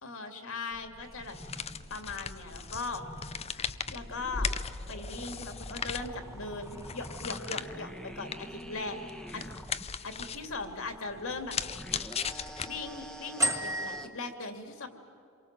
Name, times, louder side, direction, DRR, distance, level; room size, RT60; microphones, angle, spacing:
voice 1, 0.0-1.4 1.9-3.0 3.9-4.5 4.9-9.5 10.0-11.5 12.6-14.9, left 3 dB, 65° left, 6 dB, 2.9 m, -39 dB
sound 1, 0.7-10.0 11.5-14.1, equal, ahead, 1.2 m, -46 dB
sound 2, 1.0-14.1, right 1 dB, 15° right, 1.5 m, -42 dB
sound 3, 1.2-13.1, left 6 dB, 30° left, 0.6 m, -39 dB
28.0 x 23.5 x 7.7 m, 2.5 s
head